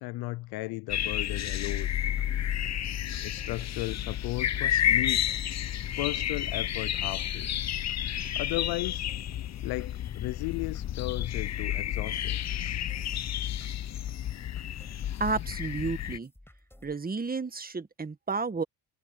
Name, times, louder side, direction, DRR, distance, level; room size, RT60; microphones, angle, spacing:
voice 1, 0.0-1.9 3.2-5.3 6.0-7.5 8.3-9.1 9.6-12.4, left 21 dB, 75° left, 0.6 m, -35 dB
sound 1, 0.9-16.2, left 11 dB, 45° left, 0.8 m, -31 dB
sound 2, 1.7-16.9, left 1 dB, 5° left, 6.1 m, -56 dB
voice 2, 15.2-16.3 16.8-18.6, right 4 dB, 25° right, 1.9 m, -31 dB
supercardioid pair, 65°, 37 cm